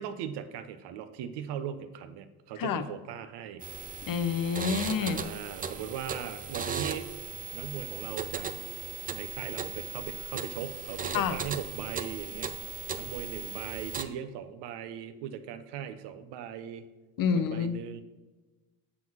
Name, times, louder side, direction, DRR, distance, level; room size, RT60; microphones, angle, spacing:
voice 1, 0.0-3.6 5.0-7.1 7.5-8.5 9.1-12.7 13.0-16.9 17.2-18.0, right 9 dB, 65° right, 10 dB, 0.8 m, -39 dB
sound 1, 3.6-14.0, right 5 dB, 20° right, 0.4 m, -37 dB
voice 2, 4.0-5.3 11.1-11.4 17.2-17.8, left 6 dB, 50° left, 11 dB, 0.7 m, -28 dB
6.1 x 3.7 x 6.0 m, 1.2 s
hypercardioid pair, 65°, 45 cm